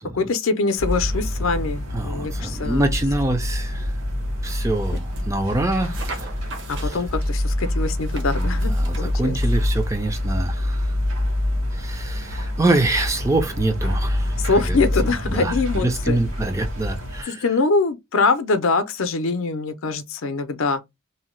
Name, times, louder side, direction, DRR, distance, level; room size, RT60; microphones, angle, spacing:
voice 1, 0.1-2.8 6.7-8.7 9.0-9.4 14.4-16.2 17.3-20.8, left 3 dB, 75° left, 0.5 m, -23 dB
sound 1, 0.8-17.2, left 1 dB, 75° right, 1.3 m, -26 dB
voice 2, 1.9-3.9 4.4-6.3 6.8-7.0 8.4-10.9 11.7-14.4 14.7-14.8 15.3-17.4, right 2 dB, 15° right, 0.4 m, -25 dB
sound 2, 4.8-5.3 5.8-7.3 8.0-9.9, right 3 dB, 60° right, 0.8 m, -40 dB
2.7 x 2.1 x 3.1 m
head